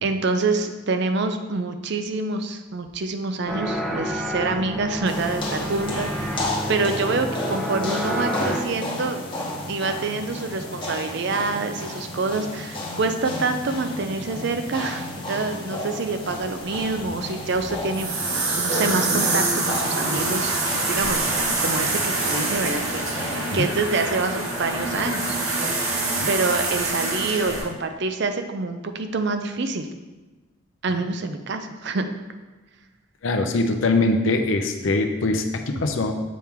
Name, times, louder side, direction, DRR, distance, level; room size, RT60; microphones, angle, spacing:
voice 1, 0.0-9.2 9.7-18.2 18.5-20.6 20.9-21.2 21.6-25.8 26.3-29.9 30.8-32.1, right 3 dB, 55° right, 7 dB, 0.5 m, -26 dB
sound 1, 3.5-8.6, equal, ahead, 0.5 m, -29 dB
sound 2, 5.0-23.6, left 2 dB, 25° left, 0.9 m, -33 dB
sound 3, 16.4-27.6, right 2 dB, 85° right, 1.2 m, -25 dB
voice 2, 33.2-36.1, left 2 dB, 65° left, 5 dB, 0.6 m, -22 dB
7.4 x 4.4 x 3.6 m, 1.2 s
head